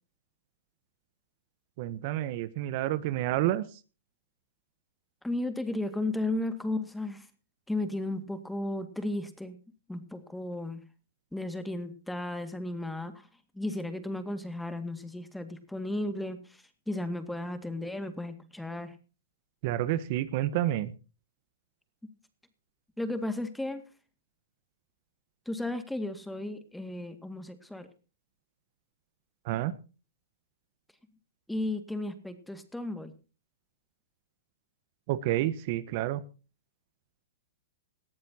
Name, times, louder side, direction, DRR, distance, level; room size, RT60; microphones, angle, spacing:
voice 1, 1.8-3.6 19.6-20.9 29.4-29.7 35.1-36.2, right 14 dB, 50° right, 14 dB, 1.1 m, -29 dB
voice 2, 5.2-7.3 7.7-9.6 9.9-10.8 11.3-13.3 13.5-19.0 23.0-23.8 25.5-27.9 31.5-33.1, left 1 dB, 5° left, 9 dB, 2.1 m, -34 dB
19.0 x 14.0 x 2.9 m, 0.34 s
hypercardioid pair, 125°, 0 cm